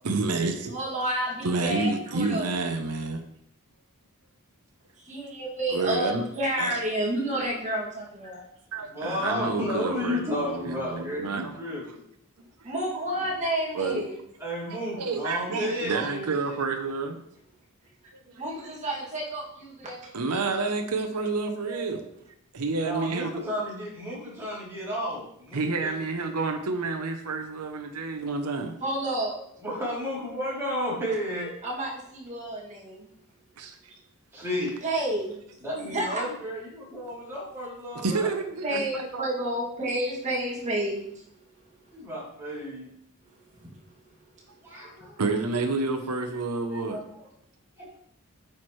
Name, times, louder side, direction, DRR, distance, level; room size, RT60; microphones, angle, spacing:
voice 1, 0.0-0.8 1.4-3.2 5.7-6.2 6.6-6.8 8.7-11.5 13.7-14.0 14.7-17.2 18.3-18.4 20.1-22.0 22.5-23.4 25.5-28.7 33.6-33.8 38.0-39.3 45.2-47.0, right 3 dB, 90° right, 5 dB, 0.8 m, -29 dB
voice 2, 0.7-2.5 5.0-8.4 12.6-14.2 18.4-20.0 21.7-22.0 28.8-29.5 31.6-33.1 33.9-34.0 34.8-35.4 35.7-36.2 38.6-41.2 41.8-41.9 43.5-44.2 44.7-45.1, right 1 dB, 35° right, -4 dB, 2.3 m, -30 dB
voice 3, 8.9-12.0 14.4-16.3 22.8-26.1 29.6-31.5 34.3-34.7 35.6-38.3 41.9-42.9 44.6-45.2 46.6-47.2 47.8-47.9, equal, 10° right, -8 dB, 3.3 m, -32 dB
8.9 x 5.8 x 3.2 m, 0.71 s
head